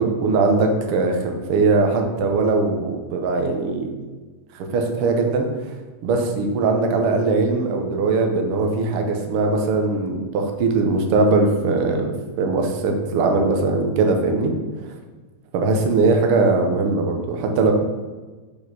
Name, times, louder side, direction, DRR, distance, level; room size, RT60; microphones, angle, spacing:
voice 1, 0.0-3.9 4.5-5.5 6.0-12.1 12.4-14.5 14.8-15.0 15.5-17.7, right 3 dB, 75° right, 3 dB, 1.2 m, -20 dB
6.9 x 5.3 x 6.0 m, 1.3 s
omnidirectional pair, 4.0 m